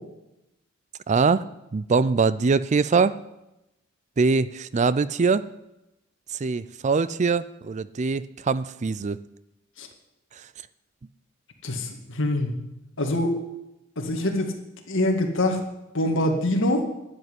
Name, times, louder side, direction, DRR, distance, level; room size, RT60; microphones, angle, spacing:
voice 1, 1.1-1.4 1.7-3.2 4.2-5.5 6.4-9.2, right 4 dB, 35° right, 17 dB, 0.4 m, -22 dB
voice 2, 11.6-12.6 13.0-13.4 14.0-14.5 14.9-15.6 15.9-16.9, left 1 dB, 65° left, 3 dB, 2.2 m, -24 dB
12.0 x 7.6 x 9.8 m, 0.92 s
head